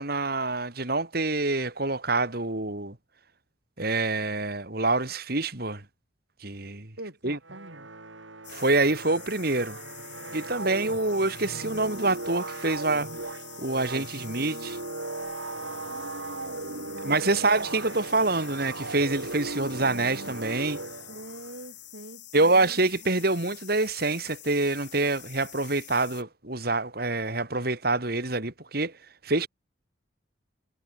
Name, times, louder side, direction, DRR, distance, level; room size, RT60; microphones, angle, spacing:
voice 1, 0.0-3.0 3.8-5.8 6.4-6.9 7.2-7.4 8.5-9.8 10.3-13.1 13.6-14.8 17.0-20.8 22.3-28.9 29.2-29.5, right 2 dB, 55° right, 3.1 m, -26 dB
voice 2, 7.0-7.9 15.5-17.7 21.1-23.1, right 1 dB, 70° right, 4.9 m, -45 dB
sound 1, 7.4-21.5, right 2 dB, 85° right, 5.7 m, -38 dB
sound 2, 8.4-26.2, left 15 dB, 70° left, 6.8 m, -47 dB
head